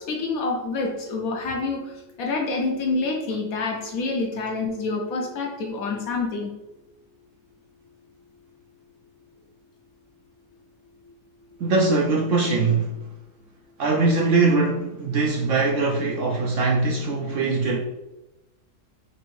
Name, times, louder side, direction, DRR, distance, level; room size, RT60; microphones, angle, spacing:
voice 1, 0.0-6.5, left 3 dB, 70° left, 1.0 m, -27 dB
voice 2, 11.6-12.9 13.8-17.8, right 3 dB, 70° right, 0.8 m, -21 dB
4.3 x 2.9 x 3.1 m
omnidirectional pair, 1.7 m